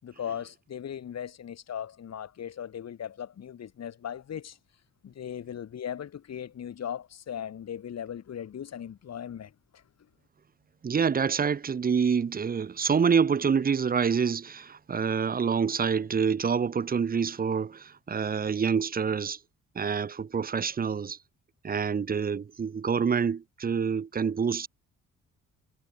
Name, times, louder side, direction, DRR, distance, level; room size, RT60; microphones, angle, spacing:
voice 1, 0.0-4.6 5.0-10.1, left 9 dB, 60° left, 6.0 m, -38 dB
voice 2, 10.8-19.4 19.8-21.2 21.6-24.7, right 6 dB, 30° right, 0.8 m, -27 dB
cardioid pair, 90°, 30 cm